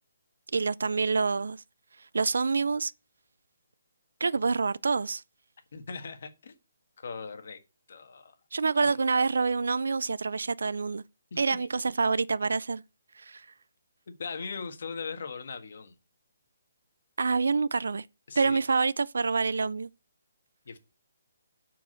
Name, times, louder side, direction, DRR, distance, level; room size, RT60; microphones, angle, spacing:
voice 1, 0.5-1.6 2.1-2.9 4.2-5.2 8.5-11.0 11.4-12.8 13.2-13.5 17.2-18.1 18.4-19.9, right 4 dB, 85° right, 0.4 m, -27 dB
voice 2, 5.7-6.5 7.0-7.6 7.9-8.3 8.8-9.0 11.3-11.6 14.1-15.9 18.3-18.6 20.6-20.8, left 5 dB, 50° left, 1.6 m, -39 dB
8.7 x 4.8 x 6.4 m
hypercardioid pair, 175°, 0 cm